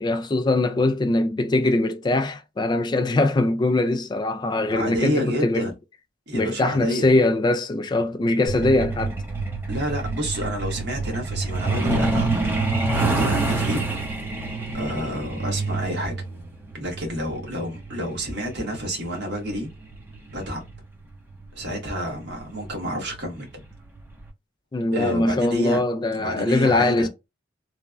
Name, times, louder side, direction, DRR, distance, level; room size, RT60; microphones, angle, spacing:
voice 1, 0.0-5.7 6.3-9.1 24.7-27.1, left 2 dB, 25° left, 0.3 m, -22 dB
voice 2, 4.7-5.7 6.3-7.1 9.7-12.3 12.9-13.8 14.7-16.1 16.7-19.7 20.3-20.6 21.5-23.5 24.9-25.8 26.1-27.1, equal, 65° right, 1.3 m, -29 dB
Truck, 8.5-20.8 22.0-22.2 22.6-22.7 23.1-23.4 23.7-23.8 24.3-24.4, right 3 dB, 10° right, 0.7 m, -27 dB
3.2 x 2.2 x 2.4 m
head